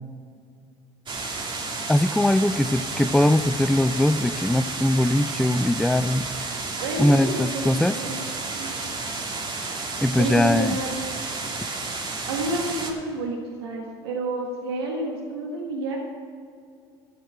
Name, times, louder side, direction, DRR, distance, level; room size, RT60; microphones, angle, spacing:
sound 1, 1.1-12.9, right 3 dB, 40° right, 2.5 m, -31 dB
voice 1, 1.9-6.3 7.0-8.0 10.0-10.8, left 1 dB, 5° left, 14 dB, 0.4 m, -21 dB
voice 2, 6.8-8.2 8.6-8.9 10.1-10.9 12.3-16.0, right 2 dB, 85° right, 0 dB, 1.4 m, -30 dB
13.0 x 7.2 x 7.8 m, 2.4 s
hypercardioid pair, 70°, 13 cm